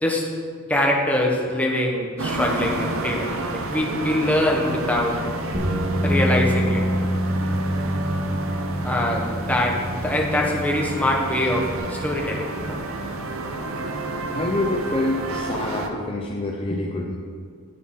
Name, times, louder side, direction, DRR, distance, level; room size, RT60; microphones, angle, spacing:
voice 1, 0.7-5.1 6.0-6.8 8.8-9.7 10.0-12.8, left 1 dB, 5° left, -1 dB, 1.1 m, -23 dB
sound 1, 2.2-15.9, right 2 dB, 80° right, 0.7 m, -30 dB
sound 2, 5.5-11.8, equal, 35° right, 2.1 m, -26 dB
voice 2, 14.3-17.2, left 2 dB, 25° left, 0 dB, 0.6 m, -27 dB
9.5 x 8.0 x 3.8 m, 2.1 s
head